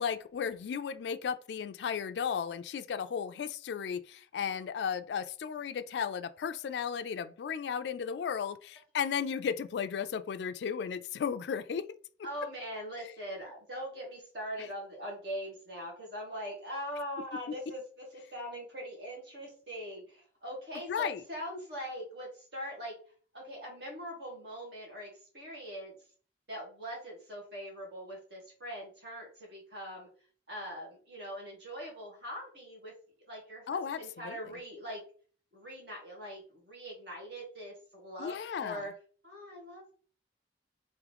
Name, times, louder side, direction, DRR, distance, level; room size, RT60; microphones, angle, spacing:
voice 1, 0.0-11.9 13.0-13.1 20.9-21.2 33.7-34.4 38.2-38.8, left 7 dB, 65° left, 0.3 m, -35 dB
voice 2, 12.2-18.0 18.3-22.9 23.3-26.0 26.5-30.1 30.5-32.9 33.3-35.0 35.5-38.9 39.2-40.0, equal, 65° right, 1.8 m, -42 dB
3.6 x 3.1 x 3.4 m
head